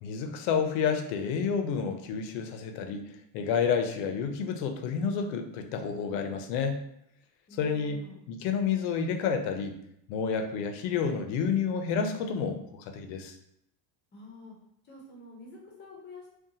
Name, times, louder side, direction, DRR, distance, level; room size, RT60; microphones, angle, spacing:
voice 1, 0.0-3.0 3.3-6.8 7.6-8.0 8.3-9.8 10.1-13.4, left 6 dB, 75° left, 6 dB, 0.6 m, -29 dB
voice 2, 7.5-8.2 14.1-14.6 14.8-16.3, left 2 dB, 25° left, -2 dB, 0.5 m, -48 dB
2.6 x 2.2 x 2.7 m, 0.76 s
cardioid pair, 160°, 49 cm